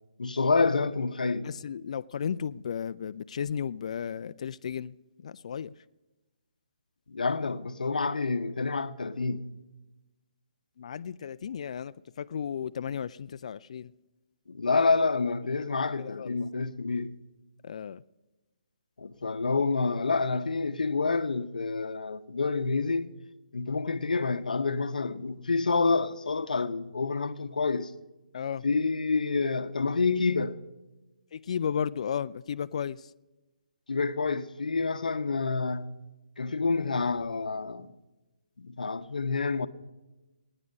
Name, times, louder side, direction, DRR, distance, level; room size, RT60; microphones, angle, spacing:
voice 1, 0.2-1.5 7.1-9.5 14.5-17.2 19.0-23.1 23.5-27.9 28.6-30.6 33.9-36.0 36.4-37.9 38.6-39.7, left 4 dB, 85° left, 0.8 m, -28 dB
voice 2, 1.4-4.9 5.2-5.7 10.8-13.9 16.0-16.4 17.6-18.0 28.3-28.6 31.3-33.0, left 7 dB, 55° left, 0.4 m, -34 dB
17.5 x 9.8 x 5.3 m
hypercardioid pair, 155°, 4 cm